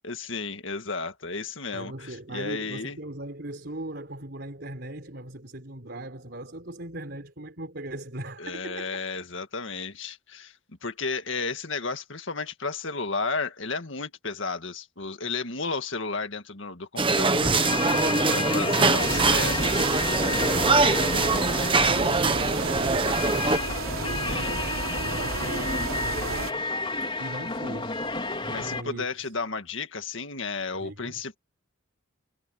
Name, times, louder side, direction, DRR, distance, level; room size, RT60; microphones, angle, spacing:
voice 1, 0.0-3.0 8.4-10.5 10.8-17.7 18.3-19.7 24.2-24.6 28.5-31.4, left 4 dB, 60° left, 2.0 m, -33 dB
voice 2, 1.7-9.0 17.8-19.9 20.4-26.7 27.0-28.0 28.4-29.3 30.8-31.2, right 1 dB, 55° right, 4.3 m, -39 dB
sound 1, 17.0-23.6, right 3 dB, 25° right, 1.2 m, -23 dB
sound 2, 17.6-28.8, left 3 dB, 25° left, 3.9 m, -31 dB
sound 3, 19.0-26.5, right 4 dB, 90° right, 3.6 m, -33 dB
head